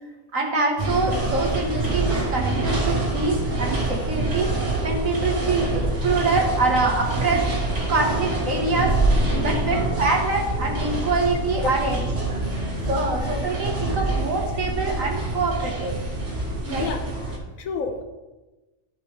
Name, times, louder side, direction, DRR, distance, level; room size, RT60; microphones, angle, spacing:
voice 1, 0.3-7.5 7.9-9.0 9.4-12.1 12.3-12.4 12.9-16.0 16.7-16.9, right 3 dB, 80° right, 1 dB, 1.9 m, -25 dB
sound 1, 0.8-17.4, right 2 dB, 60° right, 2.1 m, -25 dB
voice 2, 9.3-9.6 11.6-11.7 12.4-12.9 16.7-17.0 17.3-18.0, left 4 dB, 90° left, 5 dB, 1.4 m, -31 dB
13.0 x 5.0 x 3.4 m, 1.1 s
omnidirectional pair, 1.4 m